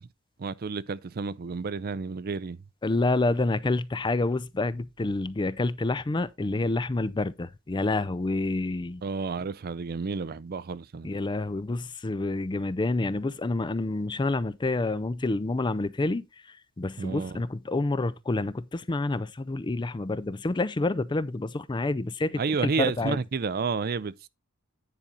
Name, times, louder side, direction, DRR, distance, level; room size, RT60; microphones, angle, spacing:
voice 1, 0.4-2.6 9.0-11.1 17.0-17.4 22.4-24.3, right 4 dB, 45° right, 0.5 m, -31 dB
voice 2, 2.8-9.0 11.0-16.2 16.8-23.2, left 2 dB, 20° left, 0.4 m, -28 dB
9.9 x 5.2 x 4.3 m
head